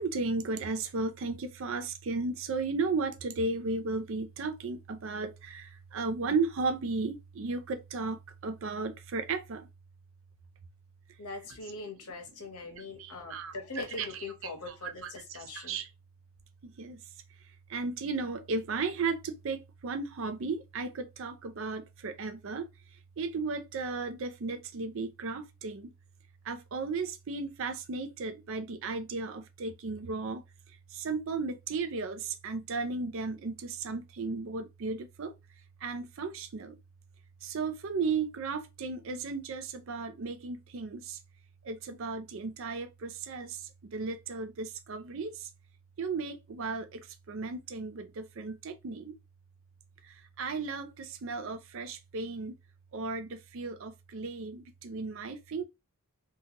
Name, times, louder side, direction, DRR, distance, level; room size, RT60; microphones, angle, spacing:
voice 1, 0.0-9.7 11.3-11.7 12.7-15.9 16.6-17.0 17.7-22.7 23.2-25.9 26.4-30.4 30.9-35.3 35.8-36.8 37.4-41.2 41.6-45.5 46.0-49.1 50.0-52.6 52.9-55.6, right 4 dB, 60° right, 0.4 m, -35 dB
voice 2, 11.2-15.8, left 3 dB, 85° left, 0.9 m, -41 dB
2.8 x 2.3 x 2.8 m
head